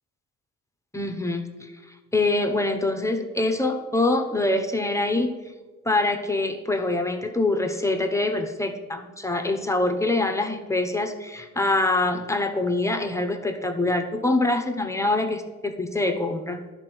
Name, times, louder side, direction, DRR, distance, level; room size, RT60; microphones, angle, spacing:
voice 1, 0.9-1.4 2.1-5.4 5.8-16.6, left 2 dB, 10° left, 5 dB, 1.0 m, -24 dB
11.0 x 4.5 x 6.2 m, 1.3 s
cardioid pair, 90°, 30 cm